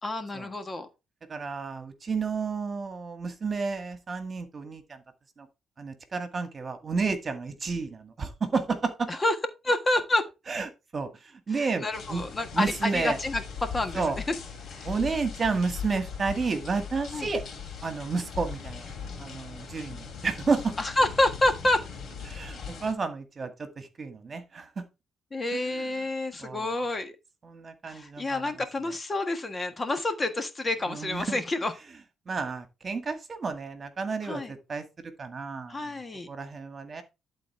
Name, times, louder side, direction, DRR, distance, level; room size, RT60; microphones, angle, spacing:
voice 1, 0.0-0.9 9.1-9.3 9.6-10.2 11.5-14.0 14.7-14.8 17.1-17.3 20.8-21.8 25.3-27.1 27.8-31.7 34.2-34.5 35.7-36.3, left 2 dB, 25° left, 1.5 m, -28 dB
voice 2, 1.3-5.0 5.4-5.5 5.8-9.1 10.5-12.2 12.5-13.2 13.9-14.2 14.8-17.4 17.8-18.9 19.2-20.8 22.3-24.8 25.7-25.9 26.4-26.7 27.4-28.5 30.9-31.4 32.3-34.8 35.2-35.9 36.3-37.0, right 4 dB, 40° right, 1.8 m, -31 dB
sound 1, 11.9-22.9, left 6 dB, 55° left, 2.6 m, -40 dB
11.0 x 4.2 x 4.3 m
cardioid pair, 90°, 0 cm